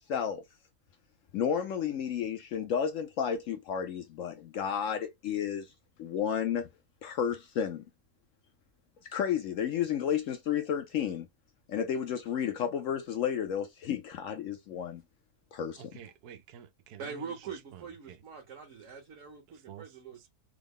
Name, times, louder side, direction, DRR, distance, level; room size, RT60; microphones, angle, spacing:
voice 1, 0.1-0.4 1.3-5.7 6.0-6.7 7.0-7.8 9.1-11.3 11.7-15.0 15.5-15.8, left 8 dB, 70° left, 0.9 m, -32 dB
voice 2, 15.8-17.2 17.7-17.8 18.1-18.2 19.7-19.9, right 9 dB, 85° right, 1.1 m, -49 dB
voice 3, 17.0-20.3, right 6 dB, 60° right, 1.2 m, -43 dB
3.6 x 2.0 x 3.5 m
omnidirectional pair, 1.6 m